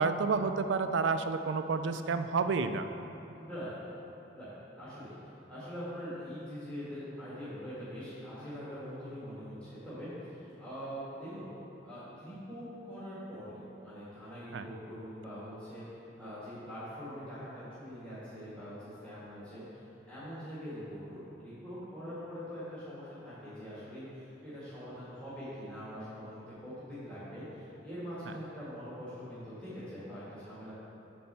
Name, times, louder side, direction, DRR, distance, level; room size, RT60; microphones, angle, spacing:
voice 1, 0.0-2.9 14.5-14.7 28.3-28.4, right 4 dB, 65° right, 9 dB, 0.4 m, -30 dB
voice 2, 3.4-3.8 4.3-5.2 5.5-11.5 11.8-30.7, equal, 5° left, -12 dB, 2.1 m, -43 dB
8.5 x 4.3 x 6.9 m, 3.0 s
head